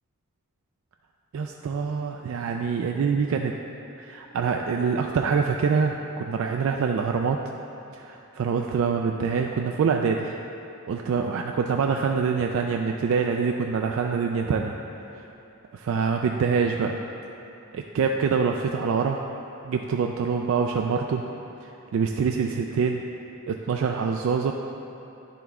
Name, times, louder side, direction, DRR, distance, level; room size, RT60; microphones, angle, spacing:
voice 1, 1.3-3.5 4.0-7.4 7.9-10.3 10.9-14.7 15.7-17.0 17.7-19.2 19.7-21.2 21.9-23.0 23.5-24.5, right 5 dB, 70° right, 2 dB, 0.3 m, -25 dB
10.0 x 3.4 x 3.6 m, 3.0 s
head